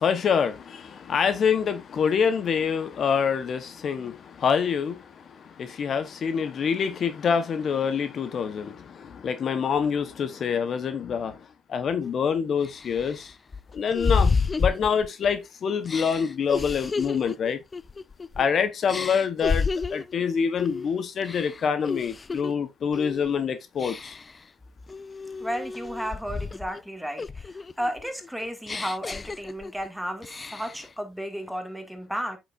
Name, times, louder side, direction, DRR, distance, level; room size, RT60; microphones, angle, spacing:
voice 1, 0.0-11.4 11.7-13.3 13.7-17.6 18.4-24.2, left 6 dB, 55° left, 1.1 m, -26 dB
sound 1, 12.0-12.1 12.6-15.4 15.8-18.5 18.9-20.1 20.6-20.9 21.2-22.5 22.9-23.3 23.8-24.4 24.9-26.8 27.2-29.9 30.2-30.9, left 4 dB, 30° left, 0.5 m, -30 dB
voice 2, 25.4-32.4, equal, ahead, 2.2 m, -33 dB
8.3 x 6.2 x 2.6 m
cardioid pair, 90°, 0 cm